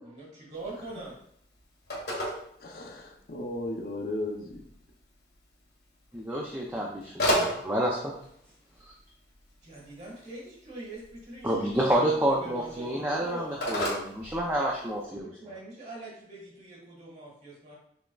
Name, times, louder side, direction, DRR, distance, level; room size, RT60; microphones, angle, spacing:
voice 1, 0.0-1.2 9.6-13.6 15.2-17.8, right 1 dB, 40° right, -4 dB, 1.6 m, -42 dB
Telephone, 0.5-15.0, equal, 75° left, 1.9 m, -37 dB
voice 2, 2.6-4.6, left 1 dB, 55° left, 2 dB, 0.6 m, -35 dB
voice 3, 6.1-8.2 8.8-8.9 11.4-15.3, right 1 dB, 10° right, -2 dB, 0.4 m, -29 dB
6.1 x 3.4 x 2.3 m, 0.69 s
head